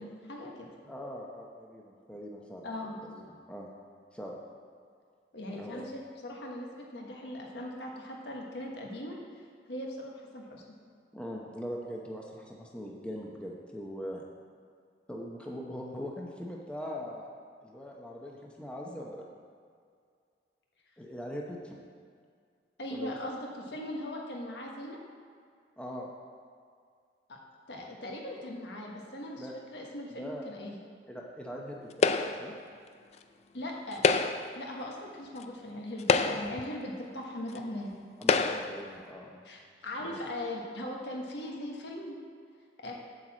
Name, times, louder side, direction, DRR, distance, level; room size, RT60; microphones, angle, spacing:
voice 1, 0.0-0.7 2.6-3.0 5.3-9.2 9.7-10.6 22.8-25.0 27.3-27.4 27.7-30.8 33.5-34.1 34.5-37.9 39.4-42.2 42.8-42.9, left 1 dB, 70° left, 0 dB, 1.3 m, -39 dB
voice 2, 0.8-2.7 3.2-3.7 4.1-4.4 5.5-5.8 11.1-14.2 15.1-17.3 17.6-19.3 21.0-21.8 22.9-23.2 25.8-26.1 29.4-29.5 30.1-30.4 31.1-32.5 38.2-39.4 40.0-40.2, equal, 5° left, -2 dB, 0.8 m, -41 dB
sound 1, 32.0-32.5 33.9-34.6 35.4-35.5 36.0-36.7 37.5-37.6 38.2-38.8, left 4 dB, 35° left, 0.3 m, -26 dB
8.0 x 4.7 x 7.4 m, 2.2 s
head